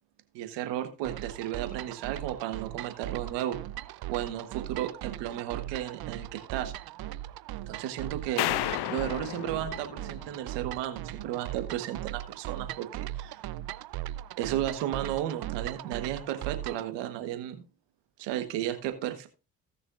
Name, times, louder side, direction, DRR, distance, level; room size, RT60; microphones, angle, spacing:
voice 1, 0.3-3.6 4.1-6.7 7.7-13.4 14.4-17.6 18.2-19.3, right 12 dB, 85° right, 9 dB, 1.3 m, -34 dB
sound 1, 1.0-16.9, right 14 dB, 65° right, 0.6 m, -39 dB
sound 2, 8.4-10.7, left 15 dB, 70° left, 0.6 m, -33 dB
17.0 x 6.3 x 2.5 m, 0.31 s
hypercardioid pair, 50°, 41 cm